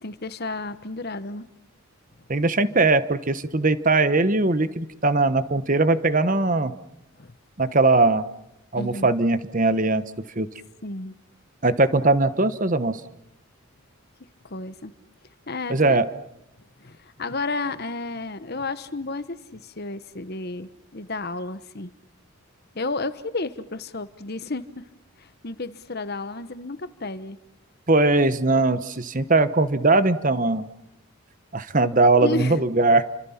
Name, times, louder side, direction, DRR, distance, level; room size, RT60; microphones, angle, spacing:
voice 1, 0.0-1.4 7.2-7.3 8.7-9.1 10.8-11.1 14.4-14.9 15.5-16.0 16.8-21.9 22.7-24.8 25.2-27.4 32.2-32.6, left 3 dB, 45° left, 13 dB, 1.1 m, -32 dB
voice 2, 2.3-6.7 7.6-8.2 8.7-10.0 10.4-10.5 11.6-13.0 15.7-16.1 27.9-30.7 31.5-33.0, right 2 dB, 35° right, 12 dB, 1.1 m, -20 dB
30.0 x 26.0 x 5.8 m, 0.85 s
head